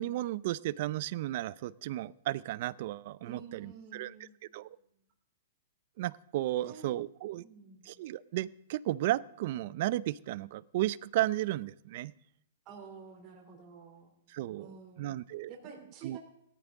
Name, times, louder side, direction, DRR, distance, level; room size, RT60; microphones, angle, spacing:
voice 1, 0.0-4.1 4.5-4.7 6.0-7.4 7.8-12.1 14.3-15.5 16.0-16.2, right 15 dB, 45° right, 20 dB, 0.4 m, -34 dB
voice 2, 3.2-4.6 6.6-6.9 7.4-7.9 12.6-14.1 14.6-15.2 15.5-16.2, right 6 dB, 30° right, 0 dB, 2.8 m, -50 dB
18.0 x 14.0 x 3.6 m, 0.76 s
hypercardioid pair, 160°, 0 cm